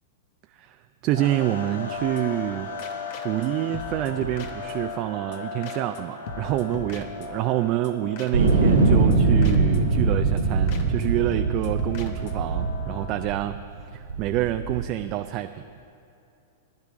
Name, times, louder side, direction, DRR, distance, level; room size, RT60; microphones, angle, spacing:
voice 1, 1.0-2.7 3.2-13.6 13.9-15.6, right 14 dB, 45° right, 8 dB, 0.4 m, -27 dB
sound 1, 1.1-13.5, left 4 dB, 80° left, 1.4 m, -38 dB
sound 2, 1.9-2.5 2.8-3.5 3.7-5.0 5.3-5.4 5.6-6.0 6.3-7.6 7.8-7.9 8.2-8.5 8.8-10.1 10.4-10.5 10.7-11.1 11.3-12.5, left 4 dB, 55° left, 1.3 m, -40 dB
sound 3, 8.3-13.5 14.1-14.9, right 3 dB, 85° right, 2.4 m, -22 dB
15.0 x 10.5 x 4.9 m, 2.7 s
hypercardioid pair, 105°, 0 cm